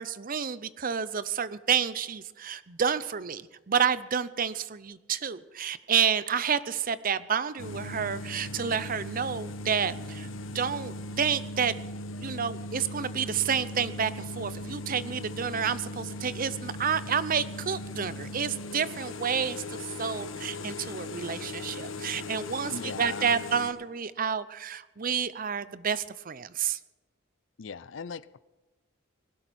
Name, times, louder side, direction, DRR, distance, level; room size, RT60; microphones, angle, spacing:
voice 1, 0.0-10.3 10.5-11.8 12.2-26.8, right 7 dB, 45° right, 16 dB, 0.6 m, -29 dB
sound 1, 7.6-23.7, left 2 dB, 90° left, 1.3 m, -39 dB
voice 2, 22.7-23.4 27.6-28.4, left 5 dB, 65° left, 18 dB, 0.5 m, -39 dB
20.0 x 12.5 x 4.3 m, 1.1 s
head